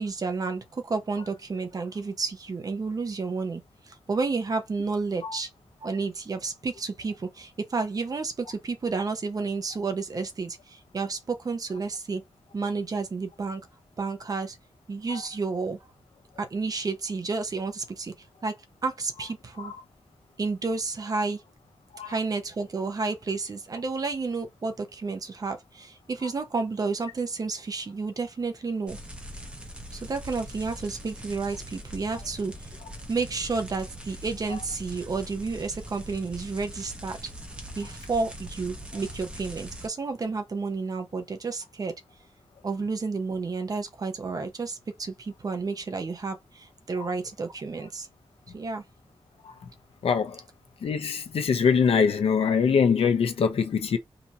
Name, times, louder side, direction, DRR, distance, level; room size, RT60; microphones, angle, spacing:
voice 1, 0.0-3.6 3.9-5.5 5.8-12.2 12.5-13.6 14.0-14.6 14.9-15.8 16.4-18.1 18.4-18.6 18.8-19.7 20.4-21.4 22.1-29.0 29.9-32.5 33.1-37.2 37.8-41.9 42.6-48.1 48.5-48.8, right 4 dB, 40° right, 0.9 m, -31 dB
sound 1, 28.9-39.9, equal, 10° right, 1.0 m, -42 dB
voice 2, 50.0-50.4 50.8-54.0, left 6 dB, 85° left, 0.9 m, -23 dB
5.1 x 2.8 x 2.9 m
wide cardioid pair, 160°, 10 cm